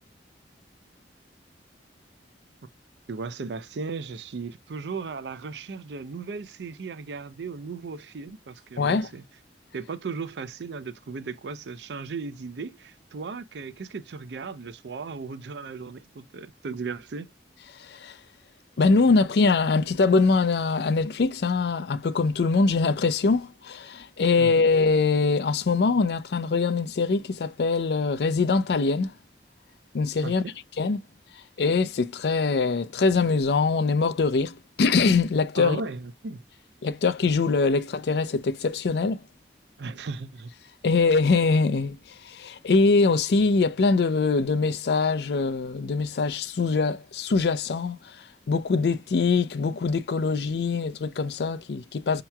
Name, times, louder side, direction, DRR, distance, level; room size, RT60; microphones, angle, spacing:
voice 1, 3.1-9.2 9.7-17.3 24.4-24.5 30.2-30.5 35.6-36.4 39.8-40.5, right 4 dB, 80° right, 0.5 m, -36 dB
voice 2, 8.8-9.1 17.9-18.2 18.8-29.1 29.9-30.4 30.8-31.0 31.6-35.8 36.8-39.2 40.8-42.0 42.2-48.1 48.5-52.2, left 4 dB, 70° left, 0.4 m, -23 dB
5.7 x 2.9 x 2.2 m
head